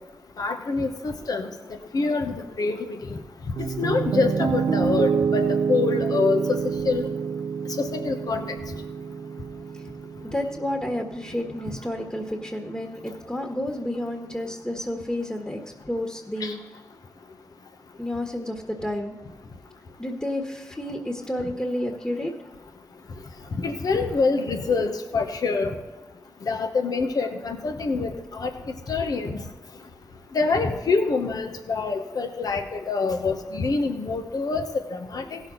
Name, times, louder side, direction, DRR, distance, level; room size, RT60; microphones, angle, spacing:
voice 1, 0.4-1.5 1.9-3.0 3.6-7.1 7.8-8.4 16.4-16.5 23.6-25.8 26.4-28.5 28.9-29.4 30.3-35.4, left 4 dB, 70° left, 5 dB, 1.1 m, -26 dB
Piano, 3.6-11.7, right 6 dB, 70° right, 0.4 m, -27 dB
voice 2, 10.2-15.6 15.9-16.6 18.0-19.2 20.0-22.3, left 1 dB, 10° left, 2 dB, 1.6 m, -30 dB
16.0 x 6.4 x 4.0 m, 1.2 s
cardioid pair, 40°, 7 cm